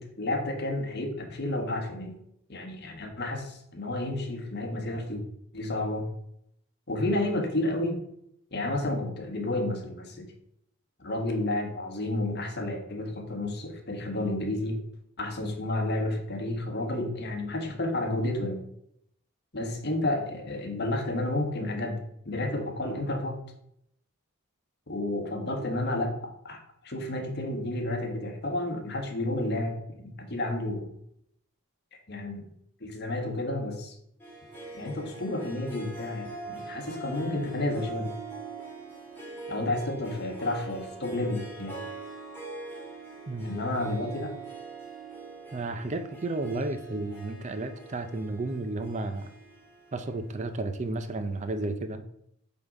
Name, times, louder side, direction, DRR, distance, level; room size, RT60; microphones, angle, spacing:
voice 1, 0.0-2.1 2.5-5.2 5.5-6.1 6.9-8.0 8.5-10.3 11.0-14.8 15.2-18.6 19.5-22.0 22.2-23.4 24.9-26.2 26.4-26.6 26.8-30.9 31.9-32.5 32.8-33.9 34.7-38.1 39.5-41.8 43.4-44.3, left 1 dB, 50° left, 3 dB, 1.3 m, -31 dB
Harp, 34.2-51.0, right 3 dB, 10° left, 1.9 m, -43 dB
voice 2, 43.3-43.6 45.5-49.3 49.9-52.0, right 2 dB, 35° right, 9 dB, 0.4 m, -32 dB
7.8 x 3.8 x 5.2 m, 0.74 s
head